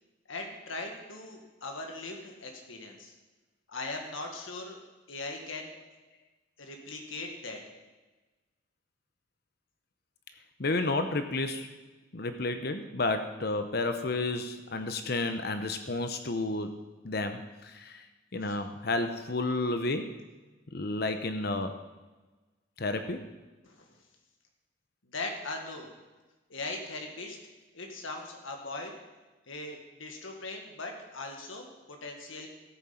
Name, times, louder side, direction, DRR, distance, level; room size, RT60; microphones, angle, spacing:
voice 1, 0.3-3.1 3.7-4.8 5.1-5.7 6.6-7.6 18.4-18.6 23.6-23.8 25.1-25.9 26.5-27.4 27.7-28.9 29.5-32.5, left 2 dB, 85° left, 2 dB, 1.9 m, -39 dB
voice 2, 10.6-11.7 12.1-16.7 17.0-18.0 18.3-20.1 20.7-21.7 22.8-23.2, left 2 dB, 50° left, 8 dB, 0.8 m, -31 dB
14.5 x 8.7 x 5.8 m, 1.2 s
head